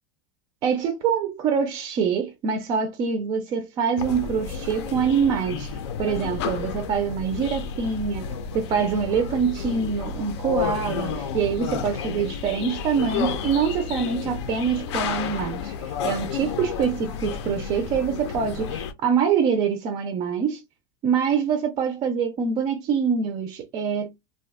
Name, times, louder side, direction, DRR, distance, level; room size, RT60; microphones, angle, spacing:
voice 1, 0.6-5.7 6.0-8.2 8.5-20.6 21.0-24.2, right 6 dB, 25° right, 0.3 m, -25 dB
sound 1, 4.0-18.9, left 6 dB, 90° left, 0.6 m, -31 dB
2.6 x 2.2 x 3.3 m
supercardioid pair, 170°, 14 cm